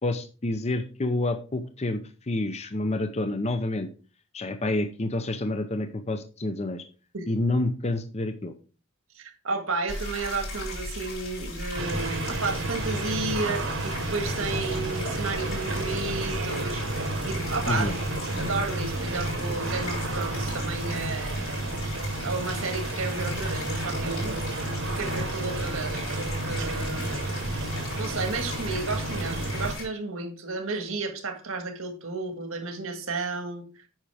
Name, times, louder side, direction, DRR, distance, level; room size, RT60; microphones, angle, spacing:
voice 1, 0.0-3.9 4.3-6.8 7.3-8.5 17.7-17.9, left 2 dB, 30° left, 8 dB, 0.6 m, -28 dB
voice 2, 9.1-16.9 17.2-17.9 18.4-21.6 21.9-24.4 24.8-27.3 28.0-33.8, right 3 dB, 80° right, 6 dB, 1.6 m, -32 dB
sound 1, 9.9-29.9, left 2 dB, 70° left, 4.4 m, -37 dB
sound 2, 11.8-29.7, right 2 dB, 65° right, 1.2 m, -31 dB
8.8 x 6.0 x 3.5 m, 0.37 s
head